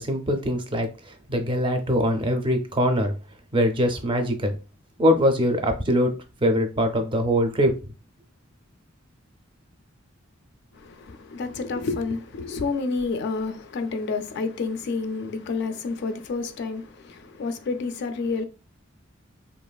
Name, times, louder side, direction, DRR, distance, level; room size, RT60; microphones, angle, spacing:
voice 1, 0.0-3.1 3.5-4.5 5.0-6.2 6.4-7.8, equal, 25° right, 0.4 m, -22 dB
voice 2, 10.8-18.4, left 4 dB, 55° left, 0.3 m, -29 dB
3.1 x 2.4 x 2.2 m
head